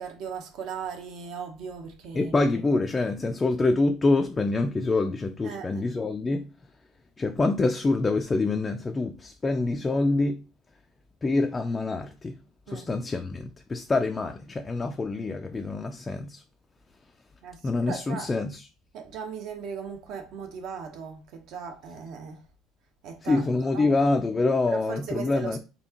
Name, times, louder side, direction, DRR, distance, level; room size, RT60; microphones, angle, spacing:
voice 1, 0.0-2.3 5.4-5.8 12.7-12.9 17.4-17.6 17.9-18.3 18.9-22.4 23.0-23.9 24.7-25.6, right 6 dB, 65° right, 0.9 m, -38 dB
voice 2, 2.1-6.5 7.2-10.4 11.2-12.4 12.7-16.4 17.6-18.6 23.2-25.6, left 3 dB, 20° left, 0.3 m, -26 dB
4.3 x 2.7 x 2.8 m
cardioid pair, 130°, 0 cm